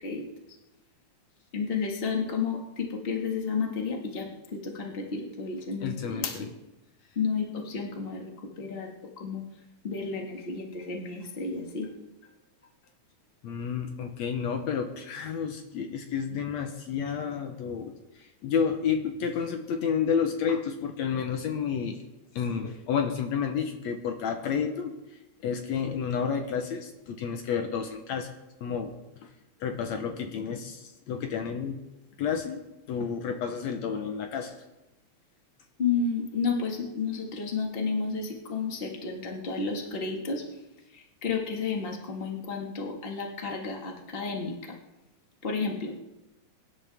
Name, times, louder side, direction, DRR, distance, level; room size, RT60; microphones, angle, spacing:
voice 1, 1.5-6.5 7.1-9.4 9.8-11.9 35.8-40.4 40.9-44.8 45.4-45.9, left 5 dB, 20° left, 0 dB, 1.7 m, -32 dB
voice 2, 5.8-6.5 13.4-17.9 18.2-22.0 22.4-24.9 25.4-28.3 28.6-28.9 29.2-29.3 29.6-31.8 32.2-32.6 32.9-34.5, left 7 dB, 70° left, 5 dB, 2.1 m, -30 dB
24.0 x 11.0 x 3.6 m, 0.97 s
omnidirectional pair, 3.4 m